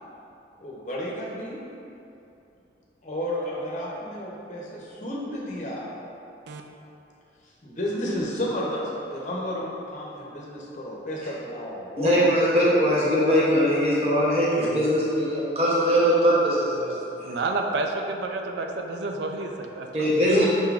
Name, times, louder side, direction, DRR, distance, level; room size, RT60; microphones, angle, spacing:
voice 1, 0.6-1.6 3.0-5.9 7.6-12.3 12.6-12.7 19.8-20.5, left 1 dB, 40° left, -4 dB, 0.7 m, -32 dB
voice 2, 12.0-16.9 17.2-17.4 19.9-20.5, equal, 35° right, -6 dB, 0.7 m, -21 dB
voice 3, 17.2-20.1, right 3 dB, 75° right, 4 dB, 0.4 m, -30 dB
5.4 x 3.6 x 2.4 m, 2.7 s
head